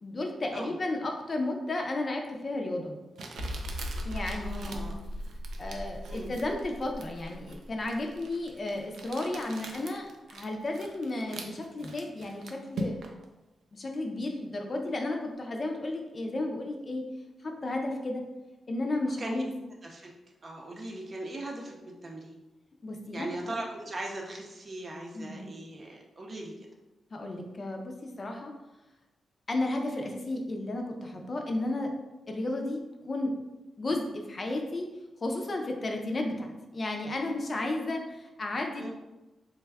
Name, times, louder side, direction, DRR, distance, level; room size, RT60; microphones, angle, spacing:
voice 1, 0.0-3.0 4.0-4.9 5.6-13.1 13.7-17.1 17.4-18.2 18.7-19.5 22.8-23.3 25.1-25.5 27.1-28.5 29.5-31.9 32.3-33.3 33.8-34.9 35.2-38.9, left 2 dB, 40° left, 2 dB, 0.5 m, -33 dB
Crumpling crinkling, 2.2-2.3 3.2-13.2, right 2 dB, 80° right, 0.4 m, -43 dB
sound 1, 3.4-8.8 9.1-9.2 9.7-9.8, equal, 85° left, 0.6 m, -39 dB
voice 2, 4.3-5.0 6.1-6.3 19.2-19.4 19.8-20.1 20.4-21.7 22.0-22.4 23.1-26.5 38.8-38.9, right 1 dB, 40° right, 0 dB, 0.6 m, -39 dB
3.3 x 2.2 x 3.4 m, 1.0 s
cardioid pair, 95°, 0 cm